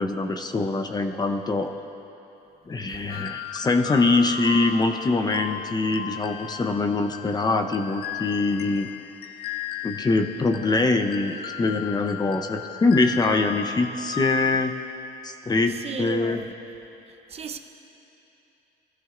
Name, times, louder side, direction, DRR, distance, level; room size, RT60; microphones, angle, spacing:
voice 1, 0.0-1.7 2.7-8.9 9.8-14.7 15.2-16.4, left 3 dB, 25° left, 0.8 m, -23 dB
voice 2, 2.9-3.2 15.7-16.5 17.3-17.6, right 6 dB, 40° right, 0.8 m, -36 dB
sound 1, 3.1-14.7, left 9 dB, 65° left, 0.5 m, -36 dB
22.0 x 13.5 x 2.6 m
cardioid pair, 110°, 17 cm